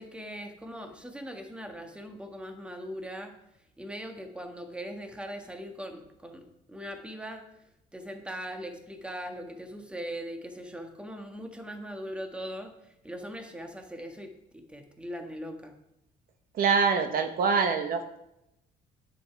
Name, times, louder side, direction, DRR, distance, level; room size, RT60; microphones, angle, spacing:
voice 1, 0.0-3.3 3.8-7.4 7.9-15.7, equal, 5° right, 4 dB, 1.5 m, -40 dB
voice 2, 16.6-18.2, right 5 dB, 60° right, 7 dB, 1.2 m, -25 dB
9.9 x 8.0 x 4.7 m, 0.85 s
cardioid pair, 110°, 17 cm